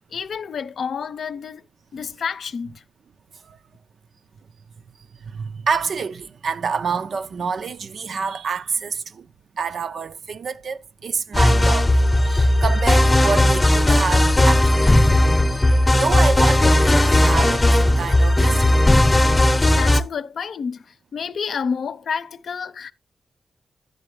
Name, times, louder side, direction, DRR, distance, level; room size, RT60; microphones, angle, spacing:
voice 1, 0.1-1.6 1.9-2.8 19.7-20.8 21.1-22.9, left 6 dB, 80° left, 0.6 m, -29 dB
voice 2, 5.2-9.3 9.5-15.2 15.5-18.7, right 5 dB, 75° right, 0.5 m, -27 dB
sound 1, 11.3-20.0, left 1 dB, 20° left, 0.7 m, -16 dB
11.0 x 7.8 x 3.2 m
wide cardioid pair, 100°, 0 cm